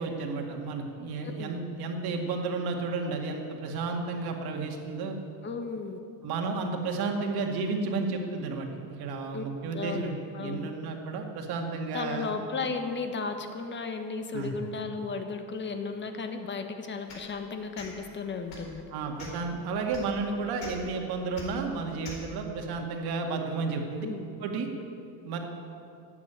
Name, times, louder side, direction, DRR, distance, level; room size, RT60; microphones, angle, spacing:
voice 1, 0.0-5.2 6.2-10.1 10.4-12.3 14.3-14.5 18.9-24.1 24.4-24.7 25.2-25.4, right 4 dB, 55° right, 2 dB, 2.2 m, -32 dB
voice 2, 5.4-6.0 9.3-9.4 9.7-10.7 11.9-18.8 24.0-24.2, left 4 dB, 25° left, 6 dB, 1.2 m, -34 dB
sound 1, 17.1-17.3 17.7-17.9 18.5-18.7 19.2-19.5 19.9-20.0 20.6-20.7 21.3-21.5 22.0-22.2, left 5 dB, 60° left, 4.2 m, -42 dB
12.0 x 8.9 x 8.8 m, 2.6 s
cardioid pair, 130°, 46 cm